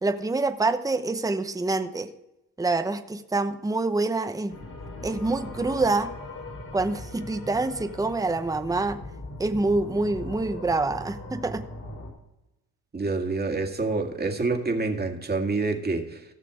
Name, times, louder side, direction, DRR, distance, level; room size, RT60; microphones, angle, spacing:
voice 1, 0.0-2.1 2.6-4.6 5.0-6.1 6.7-9.0 9.4-11.6, right 3 dB, 10° right, 9 dB, 0.8 m, -26 dB
sound 1, 4.5-12.1, left 2 dB, 65° left, 3.8 m, -39 dB
voice 2, 12.9-16.2, right 3 dB, 25° right, 2 dB, 2.1 m, -27 dB
15.5 x 6.7 x 4.9 m, 0.90 s
cardioid pair, 75°, 36 cm